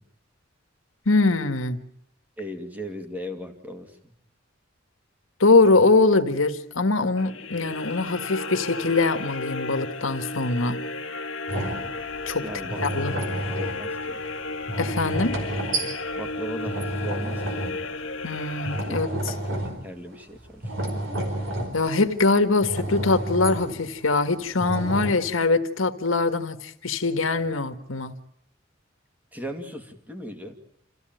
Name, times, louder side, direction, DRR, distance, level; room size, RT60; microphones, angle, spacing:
voice 1, 1.0-1.8 5.4-10.8 12.3-12.4 12.8-13.1 14.8-15.4 18.2-19.1 21.7-28.1, left 3 dB, 90° left, 1.7 m, -22 dB
voice 2, 2.4-4.0 12.4-13.2 13.6-14.2 16.2-17.7 18.8-19.0 19.5-20.7 29.3-30.5, equal, 10° right, 2.4 m, -37 dB
sound 1, 7.1-19.4, left 3 dB, 65° left, 1.7 m, -34 dB
sound 2, 11.5-18.3 18.5-20.1 20.4-22.2 22.6-23.9 24.6-25.1, right 1 dB, 75° right, 4.7 m, -31 dB
27.5 x 15.5 x 9.1 m
head